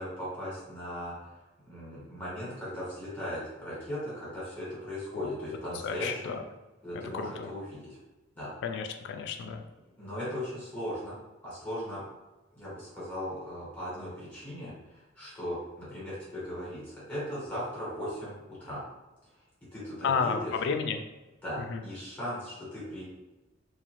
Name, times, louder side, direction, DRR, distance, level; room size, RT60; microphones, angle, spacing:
voice 1, 0.0-1.4 1.7-6.4 6.8-8.0 8.3-8.5 10.0-12.0 12.5-18.9 19.7-20.5 21.4-23.0, equal, 10° left, -9 dB, 1.2 m, -38 dB
voice 2, 5.8-6.4 6.9-7.5 8.6-9.6 20.0-21.0 21.6-21.8, left 5 dB, 65° left, 6 dB, 0.3 m, -32 dB
2.4 x 2.3 x 3.0 m, 1.1 s
head